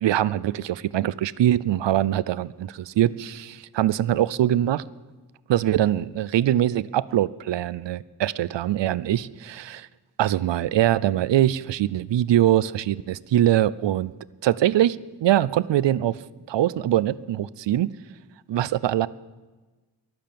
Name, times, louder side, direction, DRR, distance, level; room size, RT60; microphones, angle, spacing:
voice 1, 0.0-4.8 5.5-9.9 10.2-14.1 14.4-16.2 16.5-17.9 18.5-19.1, right 12 dB, 90° right, 19 dB, 0.6 m, -23 dB
22.0 x 7.6 x 6.9 m, 1.2 s
wide cardioid pair, 95°, 42 cm